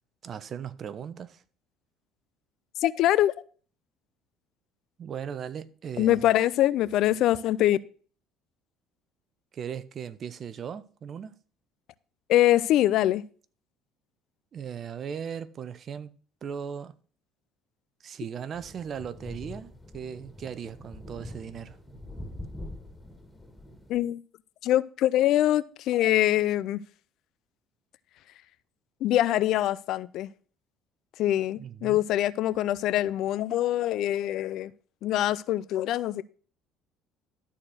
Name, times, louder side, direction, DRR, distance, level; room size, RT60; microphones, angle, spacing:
voice 1, 0.2-1.4 5.0-6.2 9.5-11.3 14.5-16.1 16.4-16.9 18.0-21.8 31.6-32.0, right 8 dB, 45° right, 0.9 m, -38 dB
voice 2, 2.8-3.3 6.0-7.8 12.3-13.3 23.9-24.2 24.6-26.8 29.0-30.3 31.2-34.7 35.0-36.2, left 13 dB, 65° left, 0.5 m, -24 dB
sound 1, 18.5-24.0, left 1 dB, 10° left, 2.9 m, -44 dB
12.5 x 4.4 x 6.3 m
supercardioid pair, 80°, 0 cm